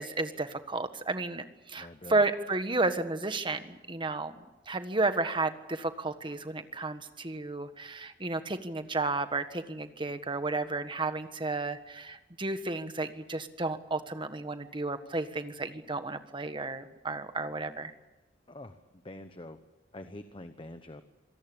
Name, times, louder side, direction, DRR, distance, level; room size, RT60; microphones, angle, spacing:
voice 1, 0.0-4.3 4.7-17.9, right 3 dB, 25° right, 9 dB, 1.5 m, -32 dB
voice 2, 1.8-2.2 18.5-18.8 19.0-19.6 19.9-21.0, left 1 dB, 30° left, 9 dB, 1.1 m, -45 dB
26.5 x 18.5 x 8.7 m, 1.0 s
head